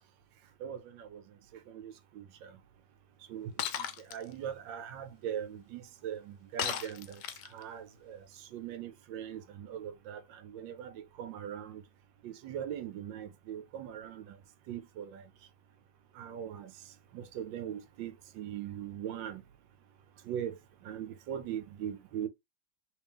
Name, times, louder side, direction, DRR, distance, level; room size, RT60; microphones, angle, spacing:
voice 1, 0.6-1.2 1.7-2.6 3.3-3.5 3.8-7.2 7.5-11.8 12.2-14.4 14.7-15.2 16.2-16.7 17.1-19.4 20.3-20.6 20.8-22.3, right 9 dB, 80° right, 1.3 m, -41 dB
Shatter, 3.6-4.2 6.6-7.6, left 10 dB, 75° left, 1.1 m, -35 dB
3.1 x 3.0 x 3.4 m
omnidirectional pair, 2.0 m